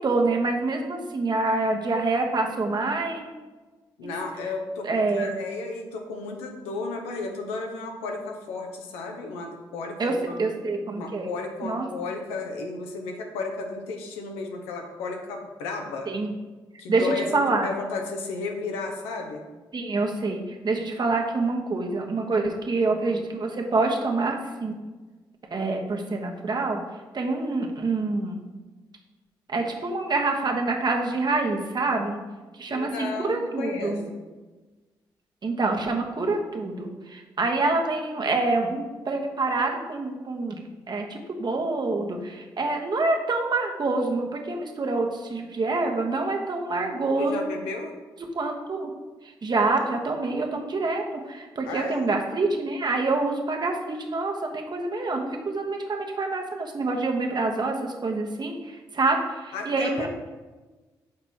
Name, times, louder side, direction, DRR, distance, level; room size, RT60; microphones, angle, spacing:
voice 1, 0.0-3.2 4.0-4.1 4.8-5.3 10.0-11.3 11.6-11.9 16.1-16.3 16.9-17.7 19.7-24.4 24.6-24.8 25.5-26.8 27.1-28.4 29.5-32.2 32.6-34.0 35.4-40.6 40.9-47.4 48.3-48.9 49.4-60.1, right 3 dB, 45° right, 2 dB, 1.2 m, -26 dB
voice 2, 4.0-10.4 10.9-16.1 16.8-19.4 32.7-34.2 47.2-47.9 51.7-52.1 59.5-60.1, left 3 dB, 85° left, 2 dB, 0.8 m, -33 dB
6.0 x 4.5 x 4.4 m, 1.2 s
hypercardioid pair, 45°, 10 cm